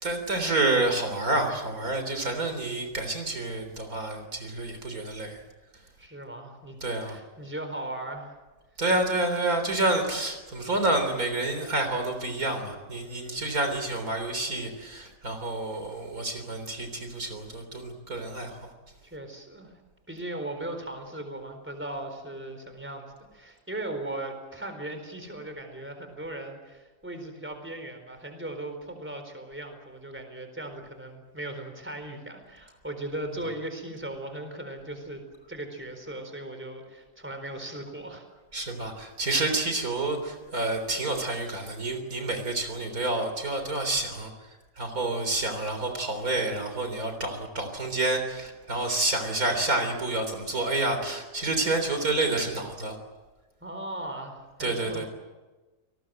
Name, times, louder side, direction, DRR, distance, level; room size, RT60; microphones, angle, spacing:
voice 1, 0.0-5.4 6.8-7.2 8.8-18.7 38.5-44.3 44.8-53.0 54.6-55.1, right 2 dB, 60° right, 6 dB, 4.1 m, -29 dB
voice 2, 6.0-8.3 13.1-13.6 19.0-19.8 20.1-35.2 35.5-38.3 53.6-55.1, right 1 dB, 5° right, 6 dB, 4.2 m, -38 dB
29.0 x 19.5 x 7.8 m, 1.2 s
omnidirectional pair, 1.7 m